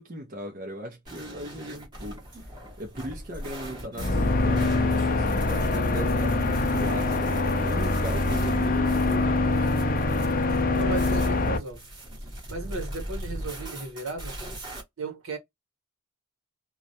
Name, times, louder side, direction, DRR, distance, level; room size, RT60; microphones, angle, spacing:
voice 1, 0.0-9.7, equal, 40° right, 0.5 m, -38 dB
sound 1, 1.1-14.8, equal, 20° right, 0.9 m, -39 dB
sound 2, 4.0-11.6, left 2 dB, 40° left, 0.5 m, -24 dB
voice 2, 10.8-11.9 12.2-14.4 15.0-15.4, right 3 dB, 70° right, 1.0 m, -35 dB
2.3 x 2.1 x 2.7 m
head